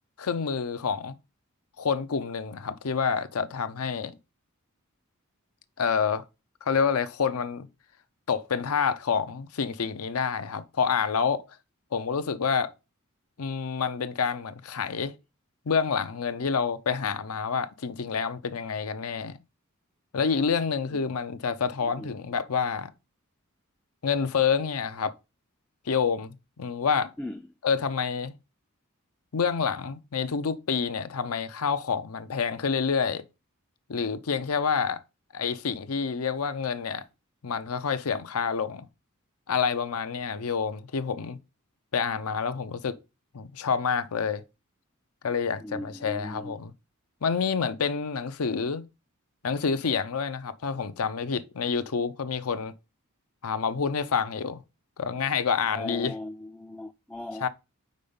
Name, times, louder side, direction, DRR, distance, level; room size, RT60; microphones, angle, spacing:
voice 1, 0.2-1.2 1.8-4.2 5.8-6.2 6.6-7.7 8.3-11.5 11.9-12.7 13.4-15.1 15.7-19.4 20.1-22.9 24.0-25.1 25.9-27.1 27.6-28.3 29.3-33.2 33.9-35.0 35.3-37.0 37.4-38.9 39.5-41.4 41.9-43.0 43.3-44.4 45.2-46.7 47.2-48.8 49.4-52.7 53.4-54.6 55.0-56.1 57.4-57.5, left 6 dB, 80° left, 0.6 m, -28 dB
voice 2, 21.8-22.1 27.2-27.5 45.6-46.6 55.7-57.5, left 1 dB, 5° left, 0.3 m, -38 dB
5.3 x 4.3 x 5.4 m
head